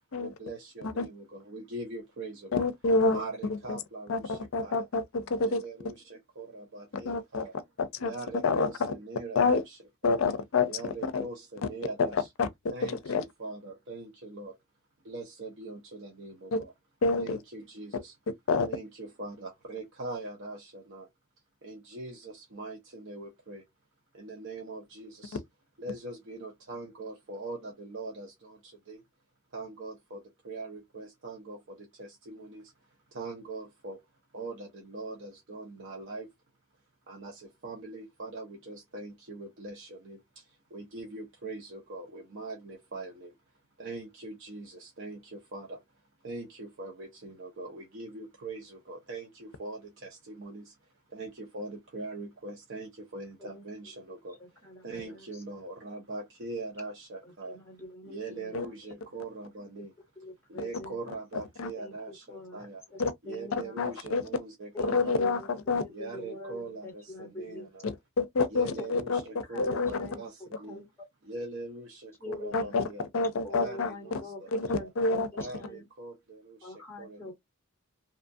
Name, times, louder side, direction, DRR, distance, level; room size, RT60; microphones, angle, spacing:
voice 1, 0.2-2.7 3.1-4.9 5.4-7.5 8.0-10.2 10.7-12.3 12.7-14.6 15.0-16.7 17.1-18.2 18.6-21.1 21.6-23.7 24.1-25.4 25.8-29.0 29.5-32.7 33.1-34.0 34.3-36.3 37.1-43.3 43.8-45.8 46.2-57.6 58.0-59.9 60.5-62.8 63.2-65.4 65.9-67.9 68.5-70.8 71.2-73.1 73.5-74.9 75.3-77.3, right 3 dB, 55° right, 0.7 m, -42 dB
voice 2, 2.5-3.2 4.1-5.6 7.1-7.5 7.8-8.1 8.4-8.9 9.4-9.6 10.0-10.7 11.0-11.2 12.1-12.5 12.8-13.2 16.5-16.6 17.0-17.4 18.5-18.7 58.5-58.7 61.6-61.7 63.0-63.1 63.8-64.2 64.8-65.4 65.7-65.8 67.8-70.1 72.5-72.8 73.1-73.9 74.5-75.3, left 4 dB, 70° left, 0.5 m, -27 dB
voice 3, 54.4-55.4 57.2-59.1 60.2-61.0 61.8-63.7 64.7-67.7 68.8-68.9 69.5-70.9 72.2-72.8 73.4-75.8 76.6-77.3, left 2 dB, 10° left, 1.1 m, -45 dB
2.7 x 2.3 x 2.6 m
head